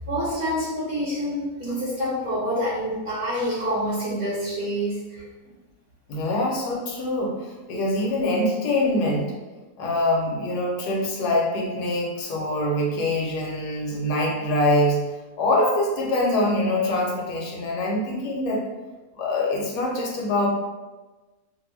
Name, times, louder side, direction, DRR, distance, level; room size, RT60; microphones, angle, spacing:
voice 1, 0.1-5.2, equal, 45° right, -9 dB, 0.7 m, -27 dB
voice 2, 6.1-9.4 9.8-15.0 15.4-18.6 19.2-20.5, left 1 dB, 75° left, -1 dB, 1.2 m, -24 dB
2.6 x 2.5 x 3.1 m, 1.2 s
omnidirectional pair, 1.8 m